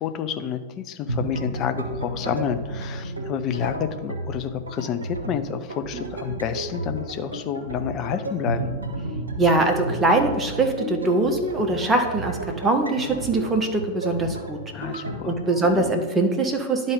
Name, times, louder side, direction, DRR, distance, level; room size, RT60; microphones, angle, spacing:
voice 1, 0.0-8.7 14.7-15.4, left 8 dB, 35° left, 9 dB, 0.5 m, -29 dB
sound 1, 1.1-15.9, right 2 dB, 80° right, 0.8 m, -32 dB
voice 2, 9.4-14.6 15.3-16.9, right 2 dB, 15° right, 3 dB, 1.0 m, -22 dB
11.0 x 3.8 x 3.8 m, 1.3 s
figure-of-eight pair, 90°, 0 cm